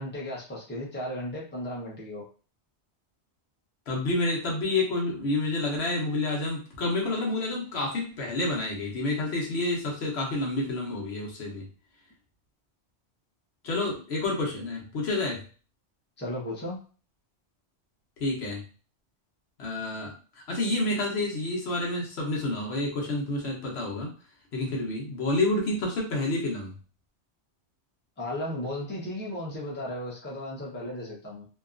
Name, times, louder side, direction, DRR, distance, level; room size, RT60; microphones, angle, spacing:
voice 1, 0.0-2.2 16.2-16.8 28.2-31.5, left 1 dB, 10° left, -5 dB, 0.7 m, -35 dB
voice 2, 3.9-11.6 13.6-15.4 18.2-18.6 19.6-24.1 24.5-26.7, left 2 dB, 70° left, -1 dB, 1.0 m, -29 dB
2.7 x 2.3 x 2.4 m, 0.38 s
omnidirectional pair, 1.1 m